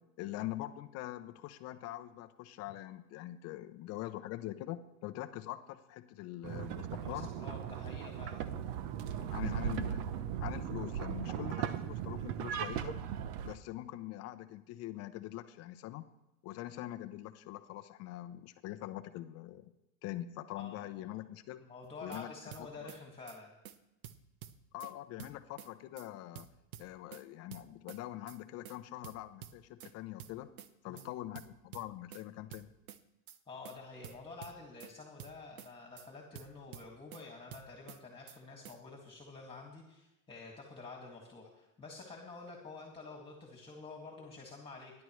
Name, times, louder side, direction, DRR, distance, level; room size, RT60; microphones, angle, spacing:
voice 1, 0.2-7.3 9.2-10.0 10.4-12.9 13.4-16.0 16.4-19.7 20.0-21.6 22.0-22.3 24.7-26.5 26.8-30.5 30.8-32.7, left 15 dB, 35° left, 10 dB, 0.7 m, -43 dB
sound 1, 6.4-13.6, right 9 dB, 50° right, 0.9 m, -38 dB
voice 2, 7.0-8.5 20.6-21.1 21.7-23.5 30.9-31.1 33.5-44.9, left 3 dB, 10° left, 0 dB, 2.1 m, -49 dB
sound 2, 21.8-22.2 22.5-23.0 23.3-23.4 23.6-23.8 24.0-24.9 25.2-25.7 26.0-26.1 26.3-27.2 27.5-28.0 28.3-28.4 28.6-28.8 29.0-29.9 30.2-30.7 31.0-31.1 31.3-32.2 32.5-33.0 33.3-33.4 33.6-33.8 34.0-34.9 35.2-35.7 36.0-36.1 36.3-37.2 37.5-38.0 38.3-38.4 38.6-38.8, right 10 dB, 80° right, 1.1 m, -50 dB
27.0 x 11.0 x 3.2 m, 0.92 s
supercardioid pair, 135°, 43 cm